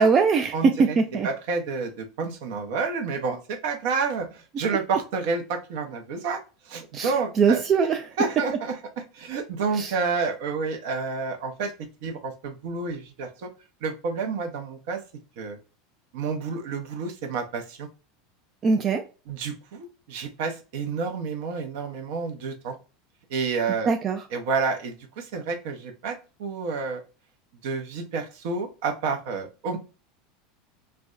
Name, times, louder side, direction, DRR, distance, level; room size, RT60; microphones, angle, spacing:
voice 1, 0.0-1.3 6.9-8.1 9.7-9.9 18.6-19.0 23.9-24.2, right 5 dB, 35° right, 6 dB, 0.3 m, -22 dB
voice 2, 0.5-1.0 1.2-6.4 6.7-7.6 8.2-8.8 9.1-11.7 12.0-13.5 13.8-15.0 15.4-15.6 16.1-17.9 19.3-22.8 23.3-23.9 24.3-27.0 27.6-29.8, right 4 dB, 65° right, 6 dB, 0.7 m, -29 dB
3.4 x 2.1 x 2.3 m, 0.34 s
hypercardioid pair, 80°, 0 cm